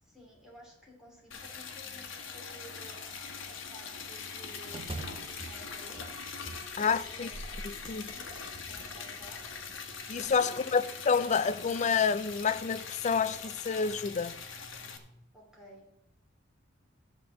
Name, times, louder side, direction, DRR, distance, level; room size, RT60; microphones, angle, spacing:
voice 1, 0.0-3.0 3.4-6.1 6.8-8.4 8.6-9.4 10.4-10.5 15.3-15.9, right 1 dB, 5° right, 2.9 m, -54 dB
Liquid, 1.3-15.0, left 5 dB, 70° left, 1.3 m, -42 dB
sound 1, 4.7-10.4, right 2 dB, 30° right, 0.6 m, -47 dB
voice 2, 6.8-7.3 7.9-8.1 10.1-14.4, left 5 dB, 35° left, 0.4 m, -28 dB
12.5 x 4.3 x 7.3 m
head